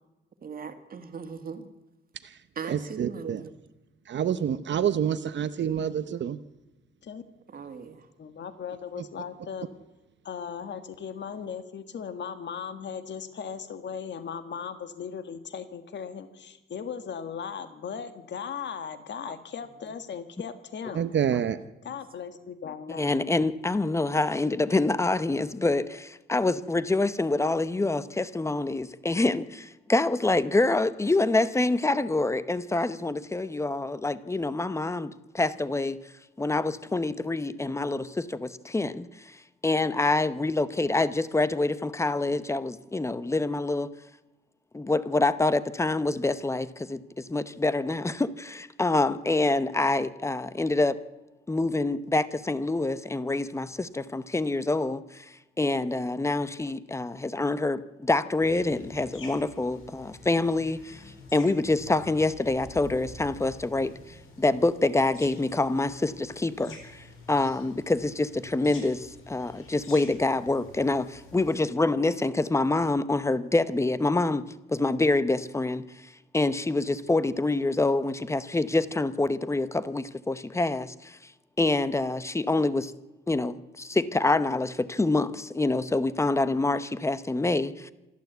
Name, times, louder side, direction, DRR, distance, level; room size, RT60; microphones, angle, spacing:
voice 1, 0.4-1.7 2.6-3.5 7.5-8.1, right 6 dB, 45° right, 7 dB, 1.9 m, -39 dB
voice 2, 2.7-3.4 4.1-6.4 9.0-9.1 20.9-21.6, right 9 dB, 60° right, 12 dB, 0.8 m, -28 dB
voice 3, 8.2-9.7 10.2-21.0 21.8-23.0, left 7 dB, 60° left, 10 dB, 1.6 m, -37 dB
voice 4, 23.0-36.0 36.4-39.4 39.6-43.9 44.7-51.0 51.5-55.3 55.6-61.0 61.3-74.4 74.7-75.8 76.3-81.2 81.6-82.9 83.3-87.9, left 2 dB, 15° left, 14 dB, 0.8 m, -26 dB
sound 1, 58.4-71.6, left 3 dB, 90° left, 4.6 m, -48 dB
27.0 x 12.0 x 8.0 m, 1.0 s
wide cardioid pair, 175°, 21 cm